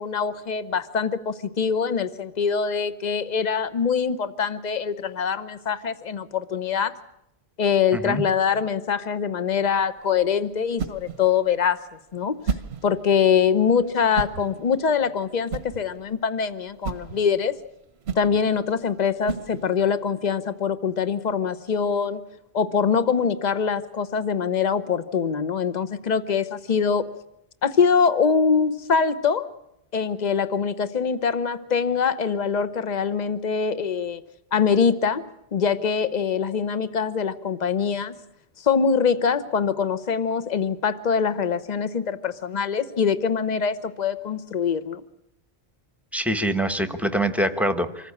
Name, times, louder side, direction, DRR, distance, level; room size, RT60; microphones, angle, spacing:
voice 1, 0.0-6.9 7.6-11.8 12.1-12.4 12.8-17.6 18.2-22.2 22.5-27.0 27.6-29.5 29.9-34.2 34.5-35.2 35.5-38.1 38.6-45.0, left 6 dB, 45° left, 13 dB, 1.0 m, -23 dB
voice 2, 7.9-8.2 46.1-48.1, right 1 dB, ahead, 10 dB, 1.0 m, -24 dB
sound 1, 9.5-20.0, right 5 dB, 85° right, 1.2 m, -36 dB
25.5 x 15.0 x 8.6 m, 0.82 s
omnidirectional pair, 1.1 m